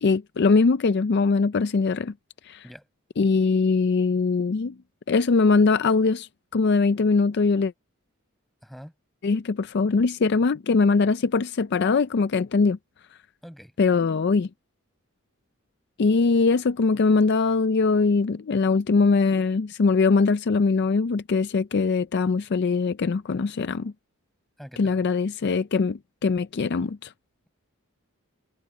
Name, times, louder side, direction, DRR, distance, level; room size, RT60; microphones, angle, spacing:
voice 1, 0.0-2.1 2.5-2.7 3.2-4.7 5.1-7.7 9.2-12.8 13.8-14.5 16.0-23.9 24.8-27.1, left 4 dB, 50° left, 0.4 m, -22 dB
voice 2, 8.6-8.9 13.4-13.7 24.6-25.1, equal, ahead, 5.3 m, -44 dB
head